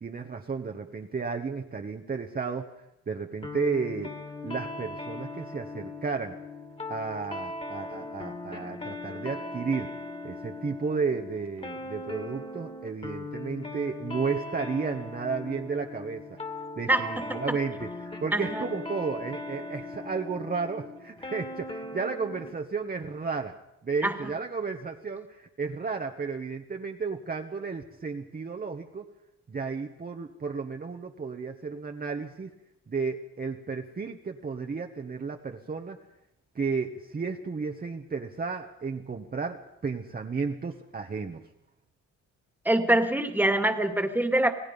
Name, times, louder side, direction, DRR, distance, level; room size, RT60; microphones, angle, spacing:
voice 1, 0.0-2.7 3.1-4.2 4.4-6.4 6.9-10.0 10.2-16.4 16.8-23.5 23.8-29.1 29.5-32.5 32.9-36.0 36.5-41.4, right 5 dB, 30° right, 3 dB, 1.4 m, -33 dB
sound 1, 3.4-22.6, left 2 dB, 20° left, 2.5 m, -39 dB
voice 2, 16.9-17.6 18.3-18.7 24.0-24.1 42.7-44.5, right 1 dB, 5° right, 7 dB, 2.2 m, -25 dB
27.5 x 17.5 x 5.4 m, 0.83 s
cardioid pair, 90°, 30 cm